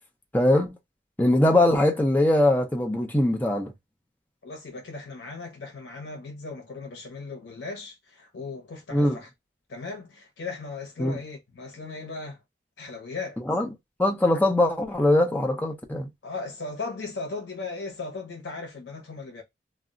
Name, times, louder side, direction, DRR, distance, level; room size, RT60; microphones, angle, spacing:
voice 1, 0.3-0.8 1.2-3.7 8.9-9.2 11.0-11.2 13.5-13.7 14.0-16.1, left 1 dB, 10° left, 0.4 m, -21 dB
voice 2, 4.4-9.3 9.7-12.4 12.8-13.4 16.2-19.4, left 3 dB, 90° left, 0.7 m, -37 dB
2.4 x 2.0 x 3.6 m
head